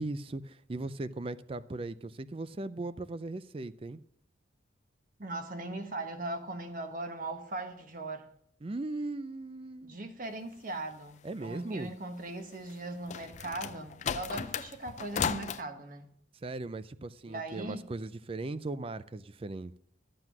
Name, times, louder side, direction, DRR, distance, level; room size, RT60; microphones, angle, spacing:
voice 1, 0.0-4.0 8.6-10.0 11.2-11.9 16.4-19.8, right 2 dB, 30° right, 0.4 m, -38 dB
voice 2, 5.2-8.3 9.8-16.1 17.3-17.9, right 2 dB, 45° right, 1.2 m, -39 dB
sound 1, 12.7-15.6, left 7 dB, 40° left, 0.4 m, -35 dB
12.5 x 7.8 x 6.0 m
head